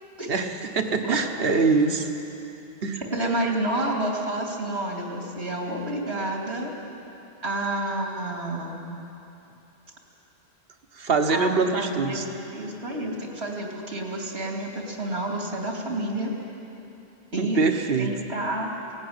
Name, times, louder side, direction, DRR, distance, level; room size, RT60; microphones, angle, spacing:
voice 1, 0.7-2.1 2.8-3.0 11.0-12.2 17.4-18.1, right 4 dB, 65° right, 6 dB, 1.4 m, -23 dB
voice 2, 3.0-6.7 7.4-8.9 11.3-12.2 12.5-16.3 17.3-17.6 18.0-19.0, right 1 dB, 85° right, -1 dB, 3.2 m, -29 dB
18.0 x 16.0 x 9.6 m, 2.8 s
omnidirectional pair, 1.1 m